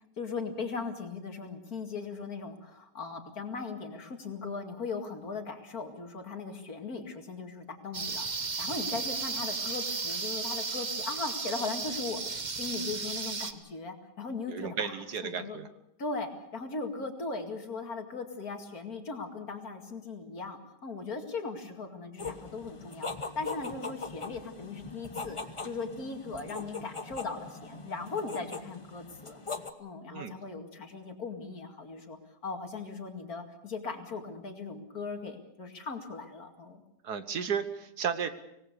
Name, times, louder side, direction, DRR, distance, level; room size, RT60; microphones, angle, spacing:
voice 1, 0.0-15.6 16.0-25.4 25.6-29.4 29.8-32.2 32.4-36.8, left 4 dB, 60° left, 4 dB, 2.7 m, -38 dB
sound 1, 7.9-13.5, right 4 dB, 30° right, 1.0 m, -34 dB
voice 2, 14.5-15.7 30.1-30.3 37.0-38.3, right 7 dB, 65° right, 10 dB, 1.8 m, -33 dB
sound 2, 22.2-29.7, left 4 dB, 20° left, 1.0 m, -40 dB
25.5 x 18.5 x 6.8 m, 0.79 s
omnidirectional pair, 1.8 m